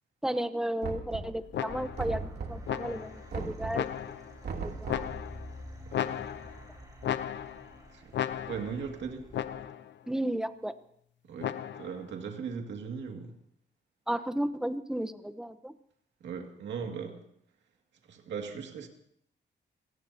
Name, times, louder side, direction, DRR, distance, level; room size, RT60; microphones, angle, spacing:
voice 1, 0.2-3.9 4.5-5.2 10.1-10.7 14.1-15.7, right 1 dB, 5° right, 0.9 m, -33 dB
Knock, 0.8-1.5 2.0-2.8 3.3-3.9 4.4-5.2, right 4 dB, 65° right, 2.9 m, -38 dB
sound 1, 1.5-2.1 2.7-3.3 3.7-4.4 4.9-5.5 5.9-6.7 7.0-7.8 8.1-8.8 9.3-9.9 11.4-12.0, left 10 dB, 85° left, 0.8 m, -35 dB
sound 2, 1.7-9.6, equal, 20° right, 5.2 m, -48 dB
voice 2, 5.8-6.2 7.9-8.1 8.5-9.3 11.2-13.4 16.2-17.2 18.1-18.9, right 6 dB, 85° right, 2.2 m, -38 dB
28.0 x 18.5 x 2.8 m
cardioid pair, 100°, 18 cm